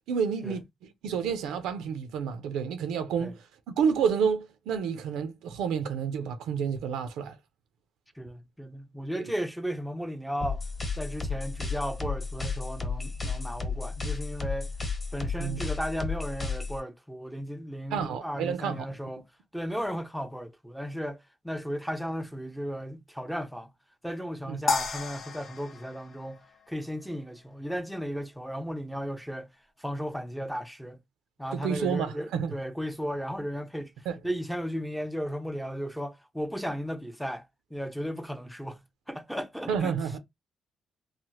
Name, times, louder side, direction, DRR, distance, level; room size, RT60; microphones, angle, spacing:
voice 1, 0.1-0.6 1.0-3.4 3.8-7.4 9.2-9.3 15.4-15.6 17.9-18.9 24.5-24.6 31.5-32.5 34.1-34.2 39.7-40.2, right 7 dB, 90° right, 0.5 m, -29 dB
voice 2, 8.2-10.7 11.0-14.7 15.1-19.3 19.5-23.7 24.0-29.5 29.8-31.0 31.4-33.9 34.2-37.5 37.7-38.8 39.1-39.9, equal, ahead, 0.4 m, -35 dB
sound 1, 10.4-16.8, left 4 dB, 25° left, 1.0 m, -33 dB
sound 2, 24.7-27.1, left 5 dB, 50° left, 0.6 m, -33 dB
3.2 x 2.0 x 2.9 m
cardioid pair, 90°, 0 cm